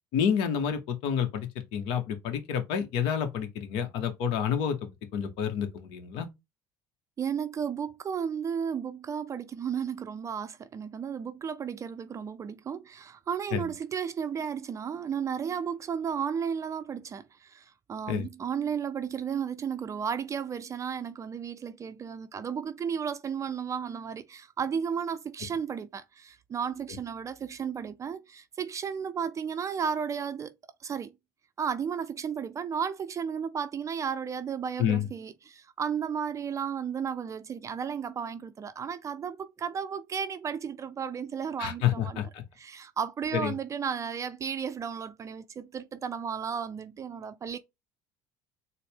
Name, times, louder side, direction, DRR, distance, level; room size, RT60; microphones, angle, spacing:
voice 1, 0.1-6.3 13.5-13.7 18.1-18.2 34.8-35.1 41.6-42.4 43.3-43.5, left 8 dB, 65° left, 0.8 m, -29 dB
voice 2, 7.2-30.5 30.8-31.1 31.6-42.2 42.6-47.6, right 7 dB, 35° right, 0.4 m, -34 dB
4.1 x 2.0 x 3.4 m
hypercardioid pair, 75°, 10 cm